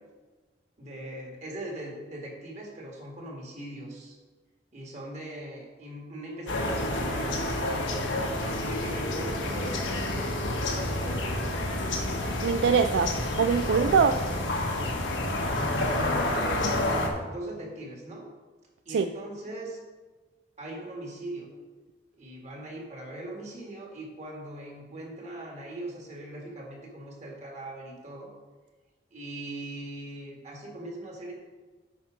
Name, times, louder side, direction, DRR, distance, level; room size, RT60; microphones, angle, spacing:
voice 1, 0.8-4.2 4.7-8.2 8.4-11.5 15.4-18.3 18.9-19.8 20.6-21.5 22.2-28.3 29.1-31.3, right 1 dB, 40° right, -1 dB, 1.9 m, -40 dB
sound 1, 6.5-17.1, left 1 dB, 90° left, 1.3 m, -29 dB
voice 2, 12.4-14.3 18.9-19.1, right 6 dB, 65° right, 9 dB, 0.3 m, -23 dB
8.6 x 5.7 x 5.1 m, 1.3 s
head